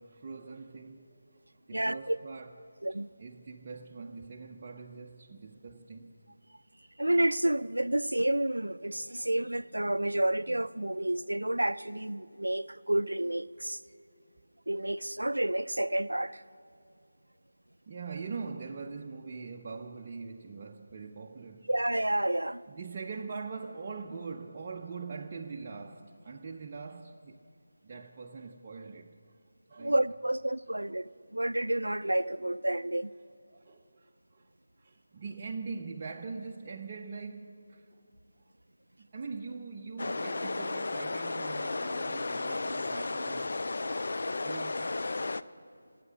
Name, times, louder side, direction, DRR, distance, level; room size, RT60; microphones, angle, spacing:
voice 1, 0.0-1.4 1.7-2.6 3.2-6.1 17.9-21.7 22.7-27.4 27.8-29.3 29.7-30.0 33.6-34.5 34.8-38.0 39.0-43.6 44.2-45.0, right 4 dB, 30° right, 0.5 m, -42 dB
voice 2, 1.7-2.2 2.8-3.1 7.0-13.8 14.7-16.4 21.7-22.6 29.8-33.1, right 1 dB, 85° right, 0.3 m, -30 dB
sound 1, 40.0-45.4, left 3 dB, 60° left, 0.3 m, -33 dB
17.5 x 8.3 x 6.1 m
figure-of-eight pair, 160°, 0 cm